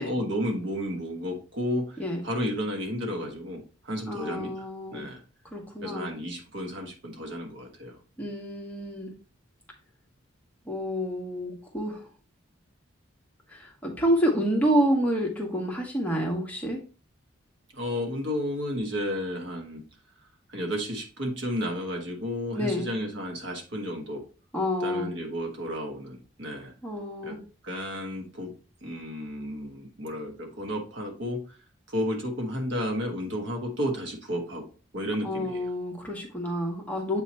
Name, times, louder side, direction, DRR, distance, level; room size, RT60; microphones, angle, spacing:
voice 1, 0.0-5.2 5.8-8.0 17.7-19.8 20.5-24.2 24.8-26.7 27.2-27.3 27.6-28.5 28.8-31.6 31.9-34.6 34.9-35.6, equal, 60° right, 2 dB, 1.4 m, -32 dB
voice 2, 4.1-5.1 5.5-6.1 8.2-9.1 10.7-12.0 13.5-16.8 22.5-22.9 24.5-25.2 26.8-27.4 35.2-37.2, equal, 5° left, -1 dB, 1.1 m, -28 dB
7.6 x 2.9 x 4.2 m, 0.36 s
head